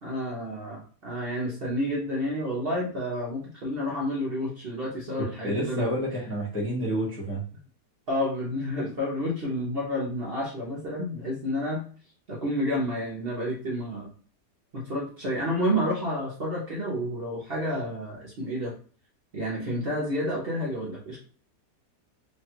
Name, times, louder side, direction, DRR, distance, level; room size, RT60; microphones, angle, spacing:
voice 1, 0.0-6.0 8.1-11.8 12.3-14.1 14.7-18.7 19.3-21.2, equal, 50° right, -3 dB, 0.7 m, -30 dB
voice 2, 5.4-7.4, equal, 20° left, -4 dB, 0.3 m, -29 dB
3.2 x 2.3 x 2.8 m, 0.41 s
omnidirectional pair, 1.8 m